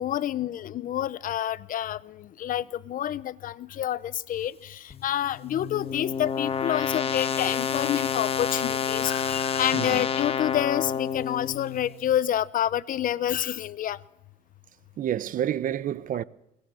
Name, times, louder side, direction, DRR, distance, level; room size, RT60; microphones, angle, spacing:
voice 1, 0.0-14.0, left 11 dB, 55° left, 0.8 m, -28 dB
sound 1, 4.9-12.0, left 7 dB, 35° left, 1.2 m, -29 dB
voice 2, 9.7-10.0 15.0-16.2, right 10 dB, 55° right, 0.8 m, -29 dB
23.0 x 19.0 x 6.4 m
cardioid pair, 110°, 17 cm